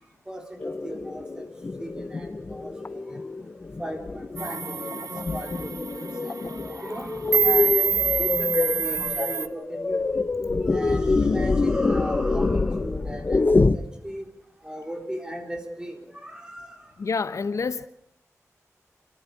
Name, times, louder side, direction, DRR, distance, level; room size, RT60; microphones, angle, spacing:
voice 1, 0.3-1.5 1.8-3.0 3.8-4.9 5.3-10.0 10.7-13.4 13.7-14.3 14.6-16.8, equal, 15° right, 4.0 m, -37 dB
sound 1, 0.6-13.8, left 3 dB, 35° left, 0.8 m, -26 dB
sound 2, 4.4-9.5, right 6 dB, 90° right, 0.9 m, -26 dB
voice 2, 11.1-11.5 17.0-17.9, left 4 dB, 65° left, 0.9 m, -28 dB
28.5 x 14.0 x 8.5 m
wide cardioid pair, 115°, 6 cm